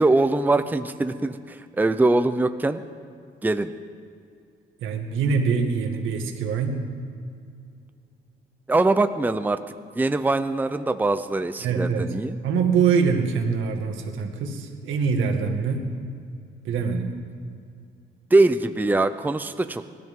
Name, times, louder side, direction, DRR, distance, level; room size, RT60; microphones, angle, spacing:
voice 1, 0.0-2.8 3.4-3.7 8.7-9.6 9.9-12.3 18.3-19.8, right 2 dB, 10° right, 10 dB, 0.6 m, -22 dB
voice 2, 4.8-6.8 11.6-12.1 12.4-15.9 16.6-17.1, right 5 dB, 80° right, 3 dB, 2.0 m, -24 dB
24.5 x 12.5 x 3.8 m, 2.4 s
cardioid pair, 90°, 20 cm